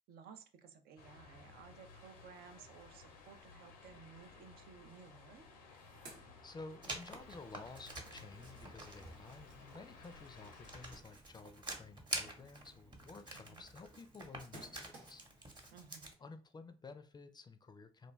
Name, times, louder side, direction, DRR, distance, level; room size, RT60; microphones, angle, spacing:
voice 1, 0.1-5.4 13.3-13.7 15.7-16.1, right 6 dB, 60° right, 8 dB, 0.4 m, -57 dB
sound 1, 1.0-11.0, left 4 dB, 85° left, 0.5 m, -58 dB
sound 2, 5.6-7.2 7.5-15.4, right 1 dB, 80° right, 0.8 m, -61 dB
voice 2, 6.4-15.7 16.2-18.1, left 3 dB, 25° left, 9 dB, 0.4 m, -53 dB
Writing, 6.8-16.1, right 2 dB, 25° right, 0.9 m, -48 dB
2.5 x 2.2 x 3.1 m, 0.39 s
hypercardioid pair, 45°, 18 cm